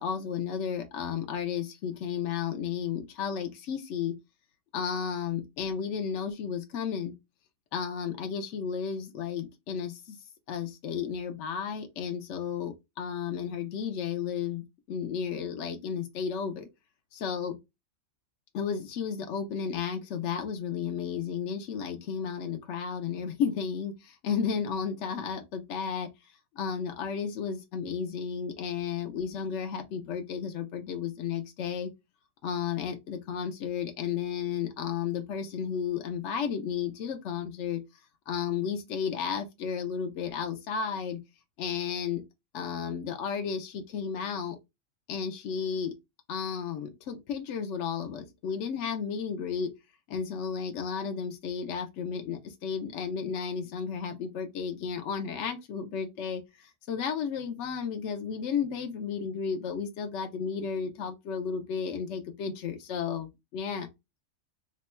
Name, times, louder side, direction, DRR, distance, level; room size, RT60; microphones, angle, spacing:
voice 1, 0.0-4.1 4.7-7.1 7.7-10.2 10.5-16.7 17.1-17.6 18.5-26.1 26.6-31.9 32.4-37.8 38.3-41.2 41.6-42.2 42.5-44.6 45.1-45.9 46.3-49.7 50.1-63.9, left 7 dB, 70° left, 0.9 m, -33 dB
2.9 x 2.2 x 4.1 m
omnidirectional pair, 1.4 m